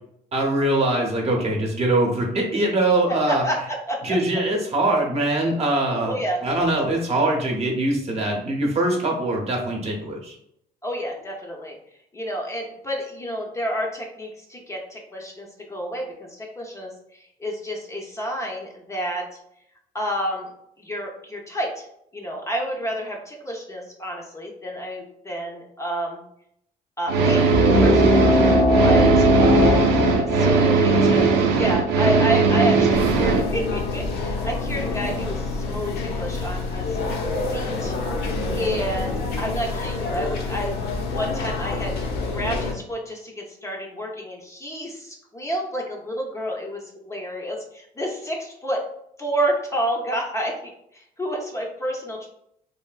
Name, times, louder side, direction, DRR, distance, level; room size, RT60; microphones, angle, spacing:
voice 1, 0.3-3.4 4.0-6.2 6.4-10.3, right 1 dB, 40° right, 0 dB, 0.8 m, -22 dB
voice 2, 6.1-6.4 10.8-11.7 12.1-19.4 19.9-20.5 20.8-21.9 22.1-26.2 27.0-27.5 27.8-28.3 28.8-29.9 30.3-37.0 37.5-37.9 38.6-40.7 41.1-41.9 42.3-48.8 49.2-52.3, equal, 15° left, 0 dB, 0.6 m, -29 dB
sound 1, 27.1-33.4, right 4 dB, 85° right, 0.5 m, -18 dB
sound 2, 27.5-32.6, left 2 dB, 85° left, 1.3 m, -20 dB
sound 3, 32.9-42.7, left 3 dB, 70° left, 0.7 m, -27 dB
3.2 x 2.6 x 2.3 m, 0.73 s
cardioid pair, 110°, 17 cm